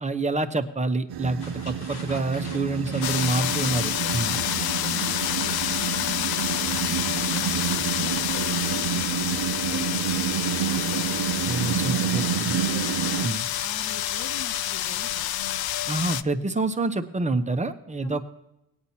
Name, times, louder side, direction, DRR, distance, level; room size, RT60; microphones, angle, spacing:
voice 1, 0.0-4.3 11.4-12.5 13.2-13.4 15.9-18.2, right 3 dB, 15° right, 8 dB, 0.9 m, -27 dB
sound 1, 1.1-13.3, right 10 dB, 60° right, 0.7 m, -29 dB
sound 2, 1.4-7.8, left 3 dB, 85° left, 3.5 m, -43 dB
voice 2, 2.8-3.2 3.6-7.4 7.9-10.1 10.4-11.2 11.5-13.3 13.6-15.3 18.0-18.2, left 3 dB, 35° left, 4 dB, 1.3 m, -42 dB
sound 3, 3.0-16.2, left 12 dB, 60° left, 0.6 m, -28 dB
17.5 x 9.5 x 2.9 m, 0.90 s
supercardioid pair, 70°, 42 cm